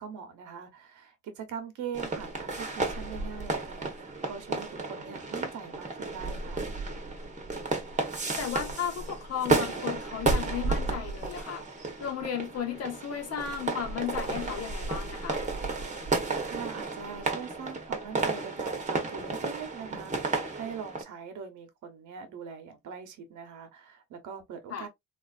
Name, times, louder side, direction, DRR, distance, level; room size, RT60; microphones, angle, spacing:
voice 1, 0.0-6.7 16.4-24.9, right 6 dB, 80° right, 1.0 m, -42 dB
sound 1, 1.9-21.0, right 3 dB, 25° right, 1.0 m, -32 dB
voice 2, 8.4-11.6 12.0-15.4 24.7-24.9, left 8 dB, 55° left, 1.0 m, -34 dB
3.2 x 2.5 x 2.4 m
cardioid pair, 90°, 30 cm